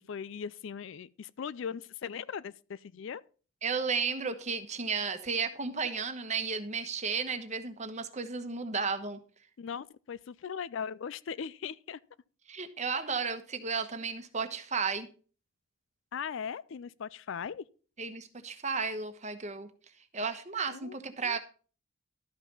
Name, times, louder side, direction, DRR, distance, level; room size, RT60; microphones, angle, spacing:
voice 1, 0.1-3.2 9.6-12.0 16.1-17.6 20.7-21.0 21.2-21.4, left 7 dB, 60° left, 0.4 m, -39 dB
voice 2, 3.6-9.2 12.5-15.1 18.0-19.7 20.1-21.4, right 5 dB, 35° right, 1.1 m, -33 dB
12.5 x 5.8 x 5.3 m
head